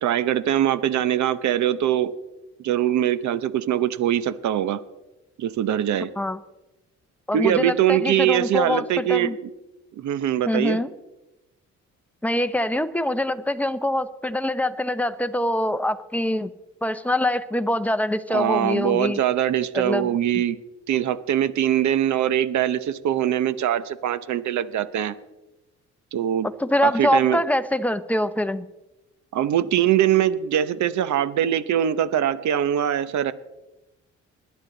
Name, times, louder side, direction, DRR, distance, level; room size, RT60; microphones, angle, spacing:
voice 1, 0.0-2.1 2.6-4.8 5.4-6.1 7.3-9.3 10.0-10.8 18.3-20.6 20.9-25.1 26.1-26.5 26.8-27.4 29.3-33.3, right 11 dB, 70° right, 15 dB, 1.0 m, -22 dB
voice 2, 7.3-9.4 10.5-10.9 12.2-16.5 16.8-19.2 19.7-20.4 26.4-28.7, left 1 dB, 5° left, 11 dB, 0.8 m, -24 dB
20.5 x 10.5 x 4.0 m, 1.0 s
cardioid pair, 90°, 30 cm